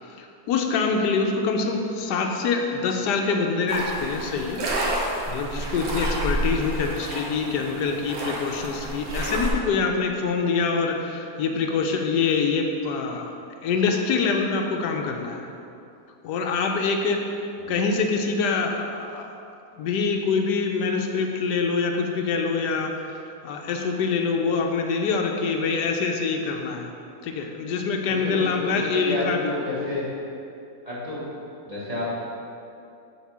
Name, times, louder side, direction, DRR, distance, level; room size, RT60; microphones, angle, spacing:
voice 1, 0.2-4.6 5.3-13.2 13.6-15.5 16.2-17.2 17.7-19.3 19.8-22.9 23.4-26.9 27.2-29.5, left 4 dB, 85° left, 3 dB, 1.2 m, -25 dB
sound 1, 3.7-9.5, right 1 dB, 65° right, 1.5 m, -29 dB
voice 2, 28.1-30.1 30.8-31.2 31.6-32.1, left 2 dB, 25° right, -8 dB, 1.5 m, -30 dB
7.2 x 3.7 x 6.1 m, 2.6 s
omnidirectional pair, 1.8 m